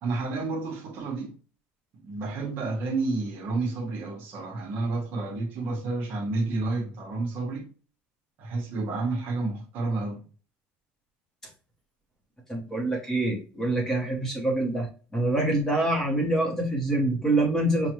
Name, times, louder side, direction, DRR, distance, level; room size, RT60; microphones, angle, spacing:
voice 1, 0.0-1.3 2.0-7.6 8.4-10.2, right 3 dB, 45° right, 1.1 m, -30 dB
voice 2, 12.5-17.9, right 2 dB, 10° left, 0.9 m, -26 dB
5.5 x 2.2 x 3.0 m
cardioid pair, 175°, 5 cm